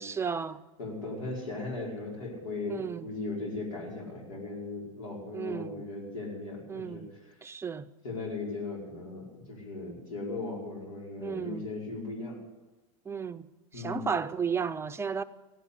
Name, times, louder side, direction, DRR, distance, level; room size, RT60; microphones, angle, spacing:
voice 1, 0.0-0.6 2.7-3.1 5.3-5.8 6.7-7.1 7.4-7.9 11.2-11.7 13.1-13.5 13.7-15.2, right 6 dB, 15° right, 0.6 m, -33 dB
voice 2, 0.8-7.0 8.0-12.4 13.7-14.1, left 3 dB, 85° left, 5.2 m, -37 dB
16.5 x 8.4 x 8.3 m
hypercardioid pair, 110°, 17 cm